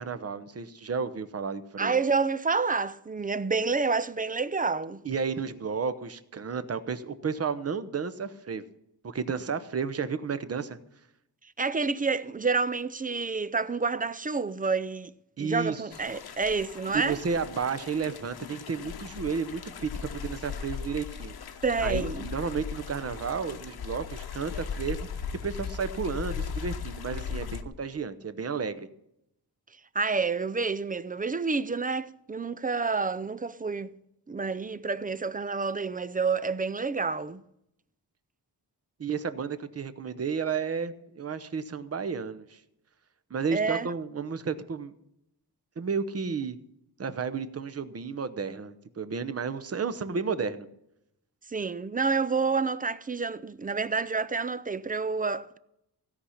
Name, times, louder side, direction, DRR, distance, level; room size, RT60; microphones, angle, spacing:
voice 1, 0.0-1.9 5.0-8.6 9.0-10.8 15.4-15.8 16.9-21.3 21.8-25.1 25.4-28.9 39.0-42.6 43.3-44.9 45.8-46.6 47.0-50.7, right 5 dB, 40° right, 0.9 m, -32 dB
voice 2, 1.8-5.0 11.6-15.1 15.4-17.2 21.6-22.3 29.9-33.9 34.3-37.4 43.5-43.9 51.5-55.6, right 4 dB, 20° right, 0.4 m, -29 dB
sound 1, 15.9-27.6, left 6 dB, 70° left, 1.1 m, -38 dB
16.5 x 5.8 x 9.8 m
wide cardioid pair, 165°, 39 cm